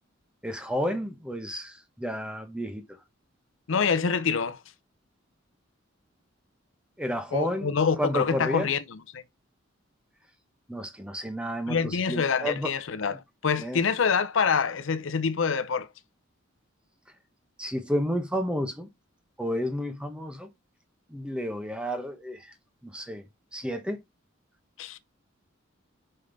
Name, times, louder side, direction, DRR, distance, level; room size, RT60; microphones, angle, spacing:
voice 1, 0.4-2.8 7.0-7.7 8.0-8.7 10.7-12.7 13.6-13.8 17.6-18.9 19.4-20.5 21.1-22.5 22.8-23.2 23.5-24.0, equal, 5° right, 1.0 m, -31 dB
voice 2, 3.7-4.6 7.3-9.2 11.7-15.9 24.8-25.0, left 5 dB, 70° left, 0.6 m, -26 dB
5.4 x 5.3 x 3.9 m
head